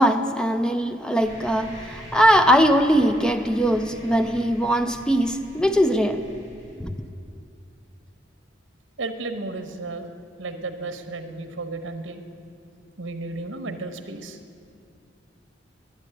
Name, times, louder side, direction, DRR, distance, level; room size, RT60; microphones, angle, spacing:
voice 1, 0.0-6.2 6.8-6.9, equal, 5° left, 8 dB, 0.5 m, -20 dB
sound 1, 1.2-6.8, equal, 40° left, 3.4 m, -43 dB
voice 2, 9.0-10.1 10.4-12.2 13.0-14.4, right 3 dB, 80° right, 7 dB, 0.9 m, -33 dB
11.0 x 8.5 x 7.6 m, 2.4 s
head